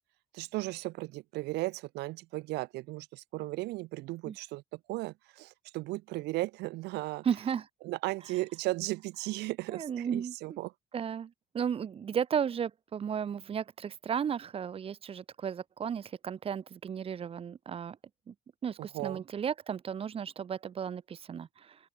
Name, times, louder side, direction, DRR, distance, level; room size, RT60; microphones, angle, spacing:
voice 1, 0.3-7.2 7.8-10.7 18.8-19.2, right 20 dB, 85° right, 0.6 m, -36 dB
voice 2, 7.2-7.7 9.7-10.3 10.9-18.0 18.3-18.4 18.6-21.8, right 8 dB, 35° right, 0.7 m, -34 dB
open air
cardioid pair, 110°, 17 cm